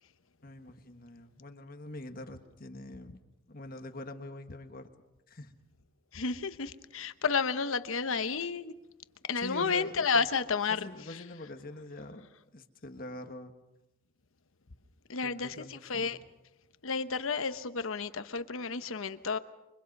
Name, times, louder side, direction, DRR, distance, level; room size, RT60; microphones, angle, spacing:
voice 1, 0.4-3.2 3.5-4.9 5.3-5.5 9.3-10.4 10.7-12.3 12.5-13.5 15.2-16.2, left 1 dB, 40° left, 1.5 m, -44 dB
voice 2, 6.1-8.7 9.3-10.9 15.1-16.2 16.8-19.4, left 5 dB, 70° left, 1.0 m, -31 dB
29.5 x 24.5 x 5.4 m
head